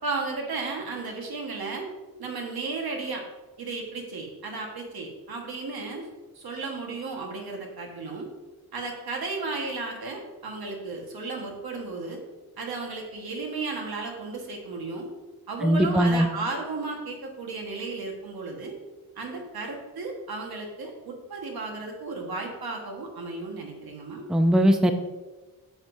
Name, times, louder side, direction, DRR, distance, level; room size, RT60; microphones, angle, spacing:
voice 1, 0.0-1.9 2.2-3.2 3.6-6.1 6.3-8.3 8.7-12.2 12.6-15.1 15.5-18.8 19.1-24.3, right 3 dB, 80° right, 1 dB, 1.5 m, -34 dB
voice 2, 15.6-16.3 24.3-24.9, equal, ahead, 7 dB, 0.5 m, -20 dB
7.8 x 7.1 x 2.7 m, 1.2 s
cardioid pair, 85°, 37 cm